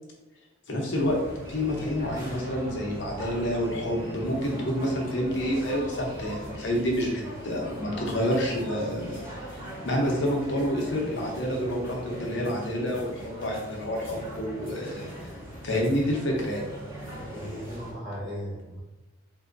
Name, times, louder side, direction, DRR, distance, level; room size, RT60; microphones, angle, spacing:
voice 1, 0.7-1.2 1.5-15.1 15.6-16.6, equal, 70° left, -1 dB, 0.8 m, -28 dB
sound 1, 0.9-17.9, equal, 15° right, 1.3 m, -39 dB
voice 2, 17.0-18.8, equal, 45° right, -6 dB, 1.1 m, -38 dB
3.3 x 2.7 x 2.5 m, 1.1 s
head